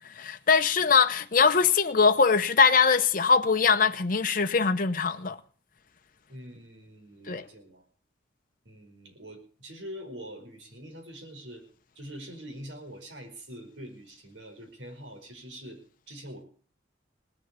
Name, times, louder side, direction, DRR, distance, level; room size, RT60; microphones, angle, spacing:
voice 1, 0.2-5.4 7.3-7.4, left 5 dB, 50° left, 0.8 m, -22 dB
voice 2, 6.3-7.8 8.7-11.7 12.0-15.8 16.1-16.4, equal, 85° right, 5.1 m, -44 dB
19.0 x 7.6 x 8.4 m
head